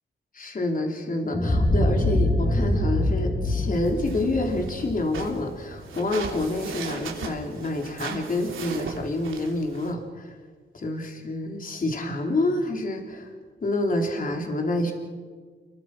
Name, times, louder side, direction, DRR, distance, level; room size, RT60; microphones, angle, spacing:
voice 1, 0.3-10.4 10.7-13.3 13.6-14.9, left 2 dB, 45° left, 2 dB, 3.7 m, -28 dB
sound 1, 1.3-6.1, left 1 dB, 20° left, 4.4 m, -24 dB
sound 2, 3.7-9.9, right 6 dB, 90° right, 3.5 m, -38 dB
29.5 x 22.5 x 6.2 m, 1.5 s
cardioid pair, 105°, 20 cm